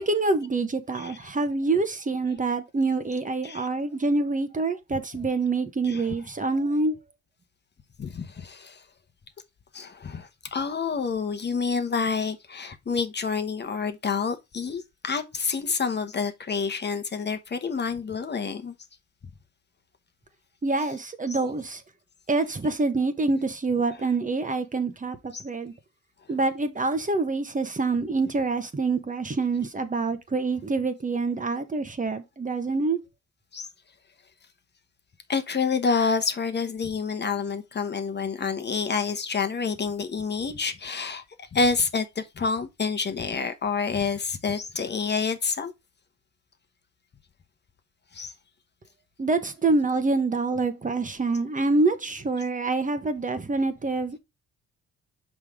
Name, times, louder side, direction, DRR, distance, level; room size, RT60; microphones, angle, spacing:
voice 1, 0.0-6.9 20.6-21.8 22.3-25.7 26.3-33.0 49.2-54.2, right 3 dB, 25° right, 1.2 m, -26 dB
voice 2, 0.9-1.3 3.4-3.7 5.8-6.1 8.0-8.8 9.7-18.7 20.8-21.0 21.3-21.4 23.9-24.0 25.3-25.4 33.5-33.7 35.3-45.7 48.1-48.3, left 5 dB, 35° left, 1.0 m, -28 dB
5.8 x 5.1 x 3.6 m
cardioid pair, 90°, 30 cm